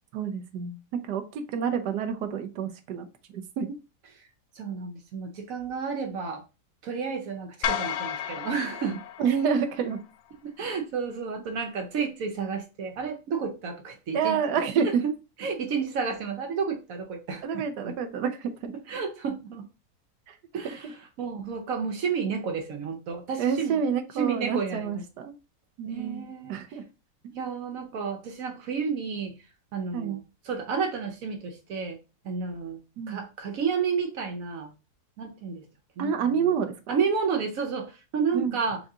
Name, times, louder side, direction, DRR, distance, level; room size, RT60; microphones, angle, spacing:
voice 1, 0.1-0.8 1.1-3.1 3.3-3.7 9.2-10.0 14.1-15.0 17.4-18.7 20.3-20.4 23.4-25.3 25.8-26.8 29.9-30.2 33.0-33.2 36.0-37.0 38.3-38.6, right 7 dB, 85° right, 1.3 m, -28 dB
voice 2, 4.6-6.4 6.8-9.0 10.4-14.4 14.8-14.9 15.4-17.9 18.9-19.7 20.5-23.8 24.2-25.0 25.9-26.6 27.3-29.4 29.7-30.2 30.4-32.0 32.2-32.8 33.1-34.7 35.2-35.6 36.0-36.5 36.9-38.8, right 5 dB, 65° right, 1.0 m, -31 dB
sound 1, 7.6-10.0, left 9 dB, 70° left, 0.8 m, -32 dB
4.6 x 3.7 x 2.7 m
omnidirectional pair, 1.7 m